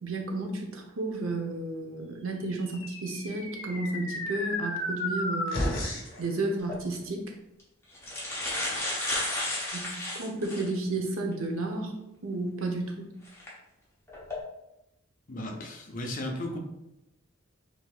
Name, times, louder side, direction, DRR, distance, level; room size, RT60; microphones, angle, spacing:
voice 1, 0.0-5.7 6.2-7.3 9.7-11.9 12.2-13.1, right 2 dB, 80° right, 2 dB, 0.8 m, -32 dB
sound 1, 2.6-6.2, left 1 dB, 60° left, 1.3 m, -33 dB
sound 2, 6.6-6.8 7.6-7.7 7.9-10.8 11.3-11.4 13.3-13.5 14.1-14.4, left 1 dB, 15° left, 0.9 m, -32 dB
voice 2, 15.3-16.6, left 1 dB, 40° left, 1 dB, 0.6 m, -35 dB
6.2 x 2.7 x 2.4 m, 0.89 s
head